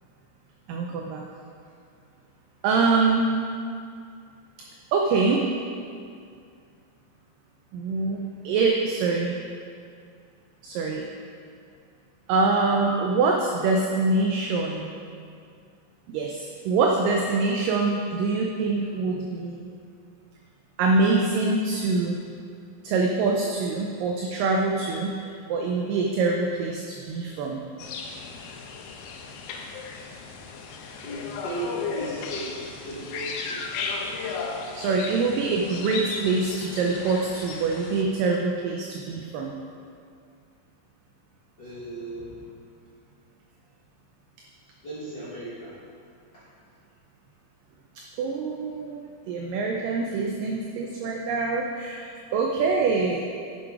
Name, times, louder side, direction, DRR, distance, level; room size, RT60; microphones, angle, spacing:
voice 1, 0.7-1.2 2.6-3.3 4.9-5.5 7.7-9.4 10.6-11.1 12.3-14.9 16.1-19.7 20.8-22.2 22.8-25.1 25.5-27.6 34.7-39.5 48.2-53.3, right 3 dB, 75° right, 0 dB, 2.1 m, -24 dB
sound 1, 27.8-38.0, left 4 dB, 85° left, 2.6 m, -35 dB
voice 2, 31.0-33.7 34.7-34.9 41.6-42.7 44.8-45.7 46.3-46.4, right 1 dB, 60° left, -9 dB, 1.2 m, -36 dB
11.0 x 6.1 x 4.8 m, 2.3 s
omnidirectional pair, 4.4 m